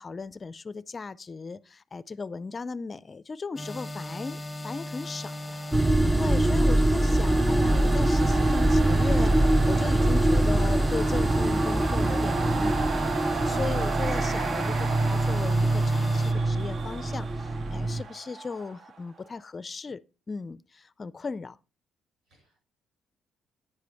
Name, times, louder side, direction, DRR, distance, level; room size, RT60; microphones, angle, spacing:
voice 1, 0.0-5.9 6.2-20.0 20.3-21.6, left 4 dB, 35° left, 0.4 m, -37 dB
sound 1, 3.6-16.3, left 1 dB, 10° left, 0.8 m, -37 dB
sound 2, 5.2-19.0, right 5 dB, 55° right, 0.7 m, -35 dB
sound 3, 5.7-18.0, right 1 dB, 15° right, 0.6 m, -24 dB
voice 2, 22.3-22.6, right 3 dB, 85° right, 6.6 m, -53 dB
9.7 x 9.5 x 3.4 m
cardioid pair, 90°, 0 cm